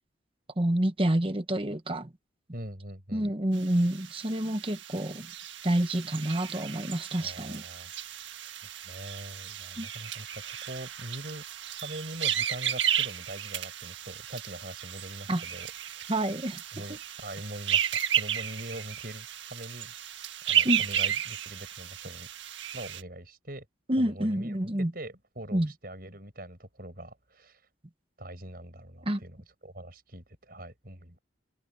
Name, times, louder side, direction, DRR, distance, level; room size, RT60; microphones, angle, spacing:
voice 1, 0.6-2.1 3.1-5.3 5.6-7.6 9.8-9.9 15.3-15.4 16.1-16.6 20.6-20.8 23.9-24.9 25.5-25.7 29.1-29.2, right 1 dB, 30° right, 1.2 m, -28 dB
voice 2, 2.5-3.3 7.2-7.9 8.6-11.4 11.8-16.1 16.7-19.9 20.4-22.3 22.7-23.7 24.0-27.6 28.2-31.2, right 1 dB, 50° right, 6.3 m, -43 dB
sound 1, 3.5-23.0, right 9 dB, 75° right, 1.6 m, -33 dB
head